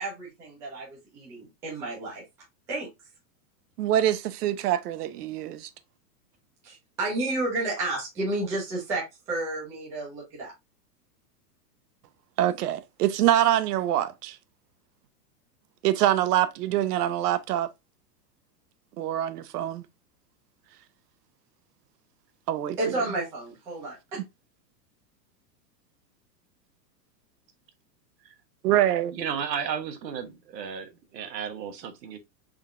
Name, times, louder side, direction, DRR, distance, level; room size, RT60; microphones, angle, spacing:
voice 1, 0.0-2.2 2.7-2.9 6.6-10.5 22.8-24.2, right 2 dB, 5° right, 0.4 m, -31 dB
voice 2, 3.8-5.7 12.4-14.4 15.8-17.7 19.0-19.8 22.5-22.8 28.6-29.2, right 12 dB, 70° right, 0.6 m, -25 dB
voice 3, 29.1-32.2, right 7 dB, 90° right, 1.1 m, -34 dB
3.8 x 3.3 x 2.4 m
supercardioid pair, 165°, 49 cm